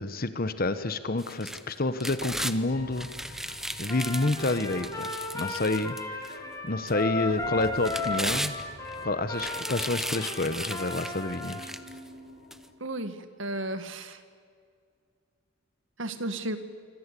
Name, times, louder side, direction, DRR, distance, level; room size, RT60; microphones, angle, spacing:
voice 1, 0.0-8.6 9.0-11.7, left 2 dB, 45° left, 11 dB, 1.1 m, -29 dB
sound 1, 1.2-2.6 3.0-6.3 6.9-7.0 7.6-8.9 9.3-12.0 12.5-12.6, right 1 dB, ahead, 0.9 m, -36 dB
sound 2, 2.7-12.7, left 1 dB, 80° left, 5.1 m, -49 dB
Trumpet, 3.9-11.6, left 3 dB, 15° left, 4.0 m, -35 dB
voice 2, 12.8-14.2 16.0-16.6, right 1 dB, 65° right, 9 dB, 2.0 m, -33 dB
26.0 x 25.0 x 8.4 m, 2.1 s
head